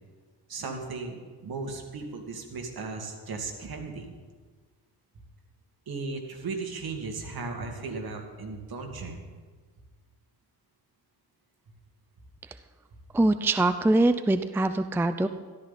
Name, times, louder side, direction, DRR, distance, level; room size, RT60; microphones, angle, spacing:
voice 1, 0.5-4.1 5.9-9.2, right 4 dB, 60° right, 3 dB, 2.4 m, -36 dB
voice 2, 13.1-15.3, right 2 dB, 5° right, 10 dB, 0.5 m, -23 dB
13.5 x 13.0 x 4.2 m, 1.5 s
cardioid pair, 75°, 41 cm